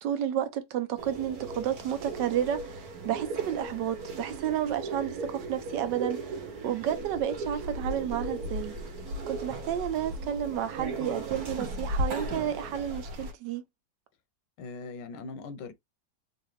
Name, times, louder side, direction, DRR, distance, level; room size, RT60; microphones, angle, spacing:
voice 1, 0.0-8.8 9.3-13.6, right 10 dB, 80° right, 1.3 m, -31 dB
sound 1, 1.0-13.3, right 2 dB, 65° right, 1.4 m, -36 dB
voice 2, 14.6-15.7, left 4 dB, 90° left, 1.3 m, -40 dB
3.9 x 2.5 x 3.2 m
omnidirectional pair, 1.8 m